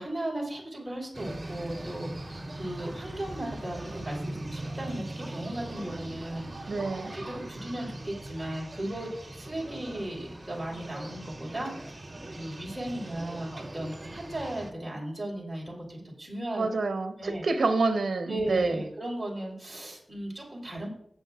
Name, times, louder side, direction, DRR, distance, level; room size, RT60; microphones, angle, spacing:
voice 1, 0.0-6.8 7.1-12.0 12.3-16.7 17.2-17.5 18.3-20.9, right 1 dB, 15° right, -3 dB, 4.7 m, -36 dB
sound 1, 1.1-14.7, right 1 dB, 35° right, 2.2 m, -40 dB
voice 2, 6.7-7.1 16.5-18.8, right 3 dB, 70° right, 6 dB, 1.2 m, -27 dB
18.0 x 7.9 x 2.5 m, 0.70 s
wide cardioid pair, 85°, 0 cm